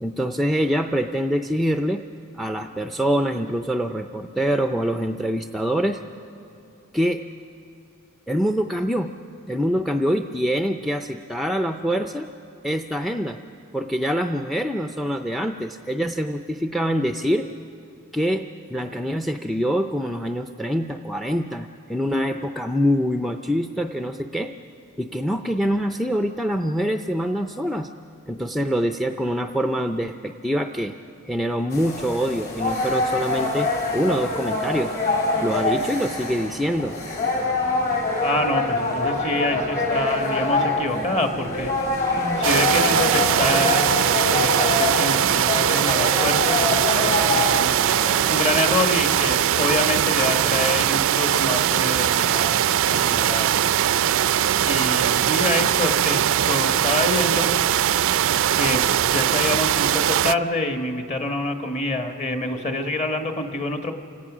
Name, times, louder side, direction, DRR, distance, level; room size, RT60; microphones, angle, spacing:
voice 1, 0.0-2.0 2.3-6.0 6.9-7.2 8.3-9.1 9.5-12.3 12.6-13.4 13.7-17.5 18.1-24.5 25.0-27.9 28.3-30.9 31.2-34.9 35.3-37.0, equal, ahead, 6 dB, 0.4 m, -25 dB
sound 1, 31.7-48.8, left 2 dB, 45° left, 4.7 m, -25 dB
voice 2, 38.2-41.7 42.4-47.7 48.0-53.5 54.7-57.6 58.6-63.9, left 2 dB, 30° left, 5 dB, 1.4 m, -26 dB
sound 2, 42.4-60.3, right 10 dB, 60° right, 0.4 m, -21 dB
28.5 x 17.5 x 6.1 m, 2.9 s
head